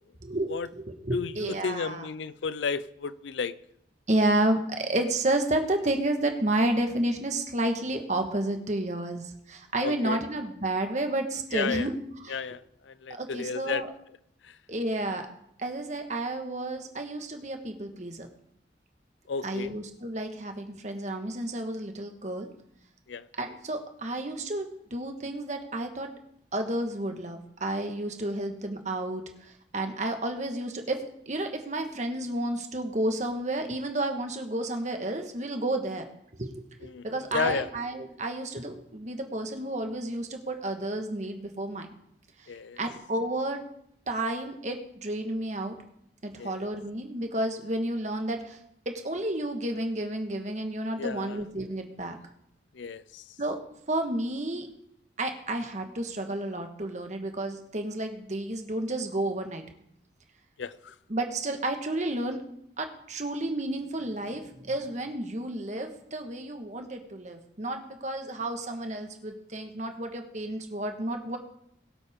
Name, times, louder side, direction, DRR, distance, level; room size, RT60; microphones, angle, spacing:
voice 1, 0.2-2.1 4.1-12.0 12.2-12.4 13.2-13.9 14.7-15.2 15.6-18.3 19.4-22.5 23.4-26.1 26.5-36.0 36.4-36.5 37.0-41.9 42.8-43.6 44.1-45.8 46.2-48.6 48.8-52.2 53.4-53.6 53.9-54.7 55.2-59.6 61.1-62.4 62.8-71.4, right 1 dB, 40° right, 1.5 m, -31 dB
voice 2, 1.1-3.5 9.8-10.2 11.5-11.9 12.3-12.6 12.9-13.8 19.3-19.7 23.1-23.2 36.8-37.0 37.3-37.7 42.5-42.8 46.4-46.7 51.0-51.4 52.8-53.2 60.6-60.9, left 5 dB, 80° left, 0.5 m, -32 dB
22.0 x 7.9 x 3.7 m
head